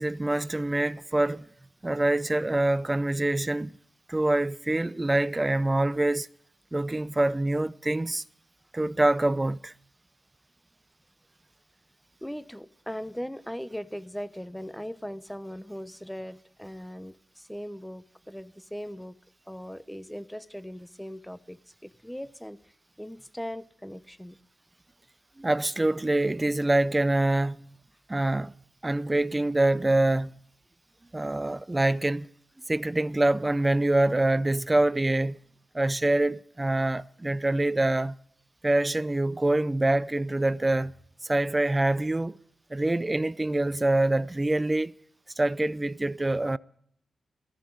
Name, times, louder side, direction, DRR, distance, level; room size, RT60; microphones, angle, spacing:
voice 1, 0.0-1.5 1.8-3.8 4.1-6.3 6.7-8.2 8.7-9.7 25.4-27.6 28.1-28.5 28.8-30.3 31.1-32.3 32.7-35.4 35.7-38.2 38.6-40.9 41.2-42.4 42.7-44.9 45.4-46.6, right 2 dB, 25° right, 0.5 m, -25 dB
voice 2, 12.2-19.2 19.5-22.6 23.0-24.4, equal, 5° left, 0.9 m, -39 dB
18.0 x 13.5 x 5.0 m
supercardioid pair, 40°, 0 cm